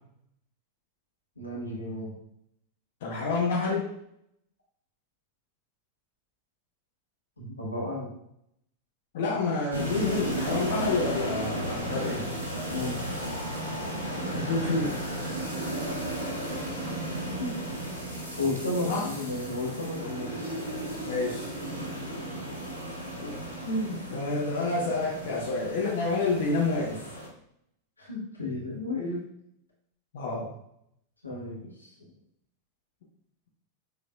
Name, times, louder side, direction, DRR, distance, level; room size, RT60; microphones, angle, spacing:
voice 1, 1.4-2.1 7.4-8.1 12.5-12.9 17.4-17.5 18.4-20.4 23.0-23.1 28.0-29.2 31.2-31.9, left 2 dB, 80° left, -4 dB, 1.3 m, -33 dB
voice 2, 3.0-3.9 9.1-12.2 14.3-15.1 18.8-19.1 21.0-21.5 23.2-23.3 23.6-27.0 30.1-30.5, left 3 dB, 55° left, -4 dB, 0.9 m, -28 dB
sound 1, 9.7-27.3, right 1 dB, 80° right, 1.1 m, -34 dB
6.5 x 3.2 x 2.3 m, 0.75 s
figure-of-eight pair, 90°, 0 cm